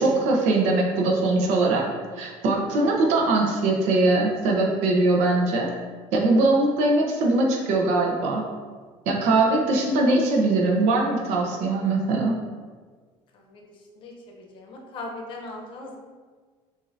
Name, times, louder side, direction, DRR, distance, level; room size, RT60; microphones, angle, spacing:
voice 1, 0.0-1.9 2.2-5.7 6.1-8.4 9.1-12.3, right 2 dB, 80° right, 0 dB, 0.9 m, -21 dB
voice 2, 13.9-16.0, left 2 dB, 50° left, 1 dB, 0.8 m, -39 dB
6.3 x 2.7 x 2.6 m, 1.5 s
cardioid pair, 140°, 11 cm